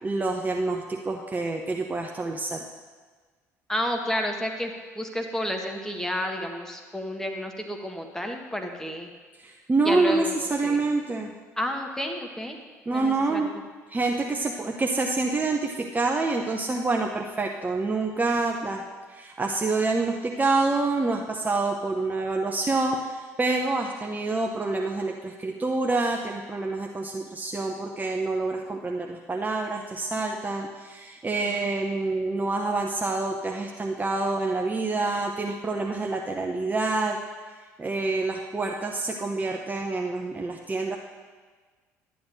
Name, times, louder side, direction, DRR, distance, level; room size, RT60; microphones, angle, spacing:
voice 1, 0.0-2.6 9.4-11.3 12.9-13.5 13.9-18.8 19.1-37.2 37.8-41.0, right 3 dB, 20° right, 1 dB, 0.7 m, -27 dB
voice 2, 3.7-4.7 5.0-9.1 9.8-10.8 11.6-12.6 12.9-13.5 31.5-31.7 32.1-32.2, equal, 5° left, 3 dB, 1.3 m, -31 dB
12.0 x 9.5 x 2.6 m, 1.5 s
figure-of-eight pair, 55°, 8 cm